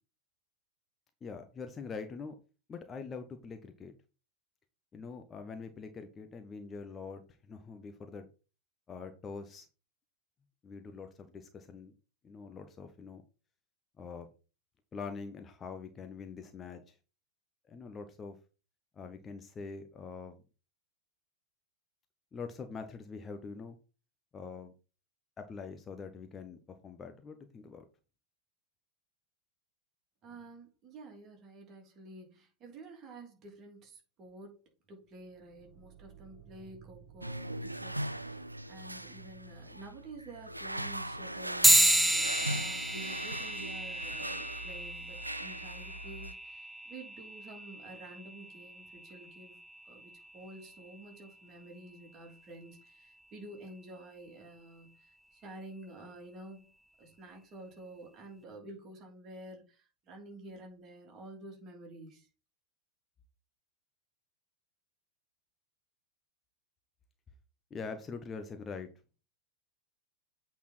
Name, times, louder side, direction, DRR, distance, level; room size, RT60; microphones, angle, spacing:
voice 1, 1.2-2.4 2.7-3.9 4.9-8.3 8.9-9.7 10.6-11.9 12.2-13.2 14.0-14.3 14.9-17.0 17.7-18.4 18.9-20.4 22.3-23.8 24.3-24.7 25.4-27.8 67.7-68.9, left 5 dB, 20° left, 7 dB, 0.8 m, -44 dB
voice 2, 30.2-34.6 34.9-42.0 42.4-49.6 49.8-56.7 57.0-62.3, right 2 dB, 30° right, 1 dB, 3.0 m, -50 dB
sound 1, 35.1-42.4, right 8 dB, 50° right, 2.4 m, -58 dB
sound 2, 37.2-46.3, right 1 dB, 85° right, 0.3 m, -40 dB
sound 3, 41.6-51.5, right 1 dB, 5° right, 0.3 m, -32 dB
8.4 x 4.2 x 4.2 m, 0.33 s
figure-of-eight pair, 90°, 0 cm